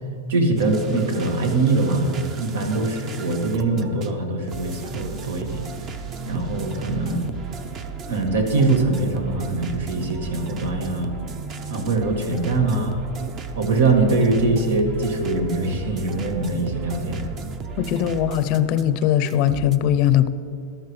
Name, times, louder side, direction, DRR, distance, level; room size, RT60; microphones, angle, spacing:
voice 1, 0.3-5.6 6.3-7.3 8.1-11.1 11.7-13.0 13.6-17.3, right 3 dB, 85° right, 4 dB, 1.9 m, -22 dB
sound 1, 0.6-19.8, right 5 dB, 30° right, 0.7 m, -35 dB
voice 2, 17.8-20.3, left 11 dB, 45° left, 13 dB, 0.5 m, -20 dB
13.5 x 12.5 x 3.2 m, 2.6 s
supercardioid pair, 150°, 0 cm